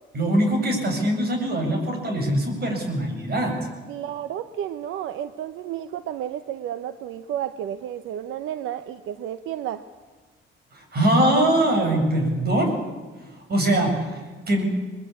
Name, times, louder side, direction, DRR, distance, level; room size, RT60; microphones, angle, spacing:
voice 1, 0.1-3.6 10.7-12.8 13.5-14.6, right 1 dB, 55° right, 4 dB, 7.6 m, -22 dB
voice 2, 3.9-9.8, right 10 dB, 90° right, 11 dB, 0.9 m, -32 dB
22.5 x 22.0 x 8.4 m, 1.4 s
cardioid pair, 90°, 20 cm